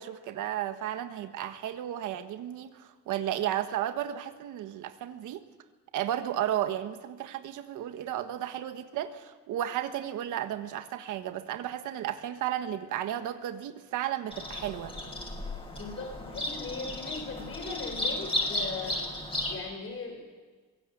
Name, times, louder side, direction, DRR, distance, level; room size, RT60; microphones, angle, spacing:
voice 1, 0.0-5.4 5.9-14.9, right 11 dB, 85° right, 8 dB, 1.4 m, -33 dB
Bird vocalization bird call bird song, 14.3-19.6, left 1 dB, 20° left, 6.3 m, -34 dB
voice 2, 15.8-19.0 19.5-20.2, left 4 dB, 45° left, 2 dB, 6.2 m, -38 dB
24.0 x 17.0 x 8.0 m, 1.4 s
cardioid pair, 90°, 30 cm